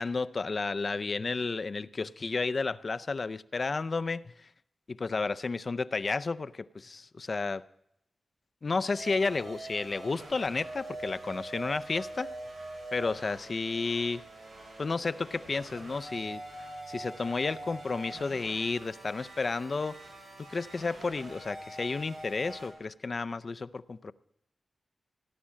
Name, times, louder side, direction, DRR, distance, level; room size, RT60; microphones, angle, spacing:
voice 1, 0.0-4.5 4.9-7.6 8.6-12.3 12.9-14.2 14.8-16.4 16.9-20.0 20.5-24.1, left 4 dB, 55° left, 0.5 m, -32 dB
sound 1, 8.9-22.7, right 1 dB, 90° right, 7.6 m, -44 dB
17.5 x 10.0 x 7.4 m
cardioid pair, 60°, 0 cm